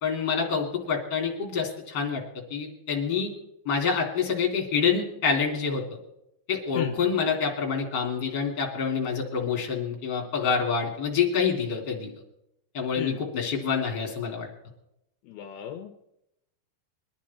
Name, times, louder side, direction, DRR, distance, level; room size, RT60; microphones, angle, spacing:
voice 1, 0.0-2.2 2.5-3.3 3.6-5.8 6.5-12.1 12.7-14.5, left 6 dB, 30° left, 0 dB, 3.0 m, -27 dB
voice 2, 15.2-16.0, left 10 dB, 75° left, 6 dB, 2.7 m, -35 dB
22.5 x 11.0 x 4.3 m, 0.82 s
omnidirectional pair, 4.8 m